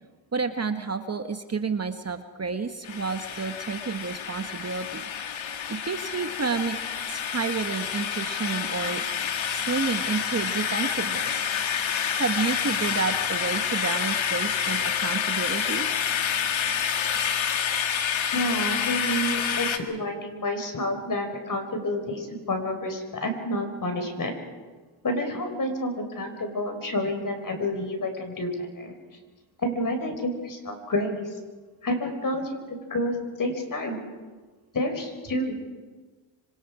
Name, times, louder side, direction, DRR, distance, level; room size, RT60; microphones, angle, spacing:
voice 1, 0.3-5.0 5.3-6.8 7.1-11.5 12.2-15.9, right 5 dB, 30° right, 8 dB, 1.2 m, -30 dB
sound 1, 2.8-19.8, left 8 dB, 65° left, 1.9 m, -28 dB
voice 2, 18.3-24.3 25.0-28.9 29.6-31.3 31.8-34.0 34.7-35.6, left 1 dB, 40° left, 5 dB, 5.0 m, -29 dB
26.5 x 25.5 x 5.0 m, 1.4 s
cardioid pair, 80°, 49 cm